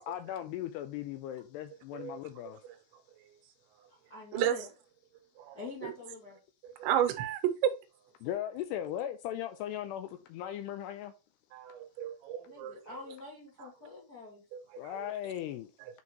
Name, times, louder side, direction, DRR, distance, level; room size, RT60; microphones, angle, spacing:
voice 1, 0.0-2.6 8.2-11.1 14.8-15.7, left 11 dB, 80° left, 2.5 m, -38 dB
voice 2, 3.9-4.7 5.5-6.4 12.4-14.4, left 3 dB, 55° left, 1.0 m, -46 dB
voice 3, 5.4-5.9 6.8-7.7 11.5-12.7 14.5-14.9, right 10 dB, 90° right, 3.2 m, -32 dB
8.4 x 4.6 x 2.9 m
omnidirectional pair, 5.1 m